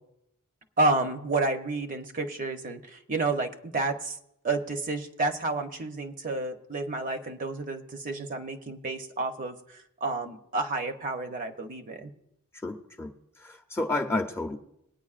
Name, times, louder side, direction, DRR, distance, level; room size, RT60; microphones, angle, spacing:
voice 1, 0.8-4.2 4.4-12.1, right 3 dB, 35° right, 6 dB, 0.7 m, -30 dB
voice 2, 12.6-13.1 13.4-14.6, left 2 dB, 10° left, 2 dB, 0.6 m, -30 dB
21.0 x 9.1 x 2.4 m, 0.81 s
head